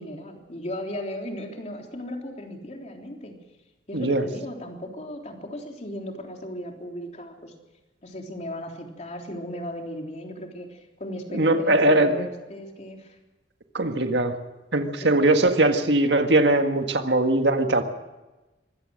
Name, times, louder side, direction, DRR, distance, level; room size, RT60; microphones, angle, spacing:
voice 1, 0.0-3.4 3.9-7.5 8.0-13.2 15.0-15.1, left 1 dB, 40° left, 2 dB, 3.6 m, -36 dB
voice 2, 11.3-12.3 13.7-14.4 14.7-17.8, right 2 dB, 80° right, 6 dB, 1.8 m, -20 dB
25.0 x 16.5 x 6.5 m, 1.1 s
head